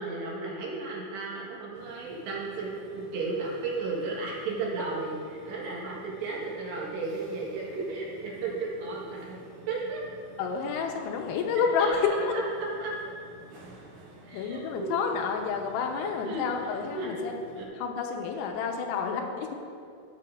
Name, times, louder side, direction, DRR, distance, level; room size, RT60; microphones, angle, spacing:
voice 1, 0.0-5.2 5.4-9.4 9.7-10.0 11.8-12.9 14.2-15.0 16.2-16.4 16.9-17.3 17.5-17.7, right 3 dB, 70° right, -4 dB, 3.2 m, -34 dB
sound 1, 1.7-17.7, right 1 dB, 50° right, 2.6 m, -51 dB
voice 2, 10.4-12.3 14.3-17.4 17.8-19.6, left 6 dB, 85° left, 2 dB, 3.4 m, -29 dB
14.5 x 9.3 x 2.5 m, 2.4 s
omnidirectional pair, 5.9 m